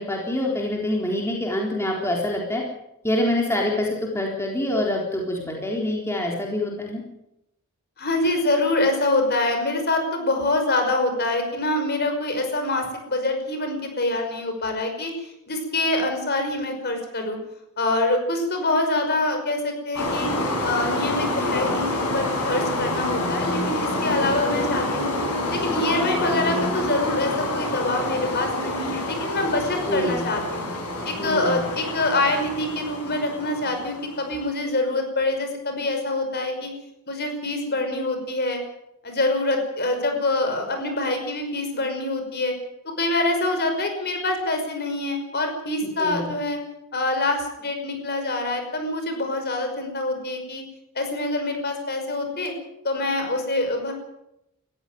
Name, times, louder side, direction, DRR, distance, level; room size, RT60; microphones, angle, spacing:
voice 1, 0.0-2.6 3.0-3.9 4.1-7.0 29.9-30.2 31.2-31.6 46.0-46.3, left 1 dB, 10° left, -1 dB, 3.8 m, -25 dB
voice 2, 8.0-17.4 17.8-20.3 20.6-25.1 25.5-30.7 31.1-36.7 37.1-38.6 39.0-42.5 42.8-46.6 46.9-50.6 51.0-52.5 52.8-53.9, left 2 dB, 45° left, 5 dB, 5.6 m, -25 dB
sound 1, 19.9-34.4, left 1 dB, 90° left, 7.7 m, -27 dB
20.5 x 15.0 x 9.4 m, 0.85 s
head